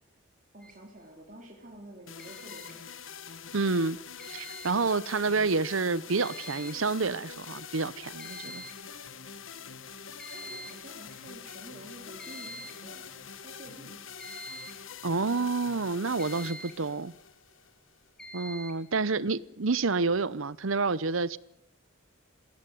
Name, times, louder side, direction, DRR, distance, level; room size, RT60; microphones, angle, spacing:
voice 1, 0.5-2.8 10.3-13.1 13.4-14.0 18.9-19.4, right 1 dB, 40° right, 4.2 m, -49 dB
sound 1, 0.6-0.8 2.2-2.8 4.2-4.8 6.2-6.8 7.1-7.2 7.7-7.8 8.2-8.8 10.2-10.8 12.2-12.9 14.2-14.9 16.2-16.9 18.2-18.9, right 1 dB, 5° left, 2.9 m, -45 dB
sound 2, 2.1-18.1, left 7 dB, 80° left, 1.6 m, -45 dB
voice 2, 3.5-4.0 4.3-8.6 15.0-17.1 18.3-21.4, right 4 dB, 80° right, 0.9 m, -29 dB
22.0 x 17.0 x 9.4 m
head